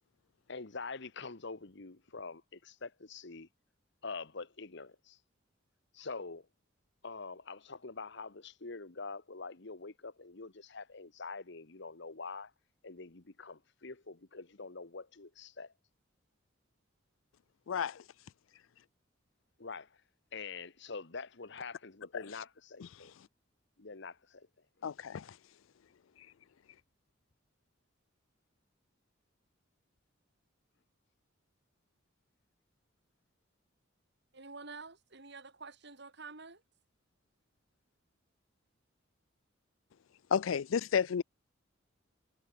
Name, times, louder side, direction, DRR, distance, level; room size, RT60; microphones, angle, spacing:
voice 1, 0.5-3.5 4.0-5.2 5.9-6.5 7.0-12.5 12.8-15.7 19.6-19.9 20.3-23.1 23.8-24.5 24.8-24.9, left 4 dB, 65° left, 1.4 m, -45 dB
voice 2, 17.7-18.0 22.1-22.2 24.8-25.3 40.3-41.2, left 7 dB, 80° left, 0.4 m, -31 dB
voice 3, 34.3-36.6, right 4 dB, 60° right, 3.3 m, -48 dB
head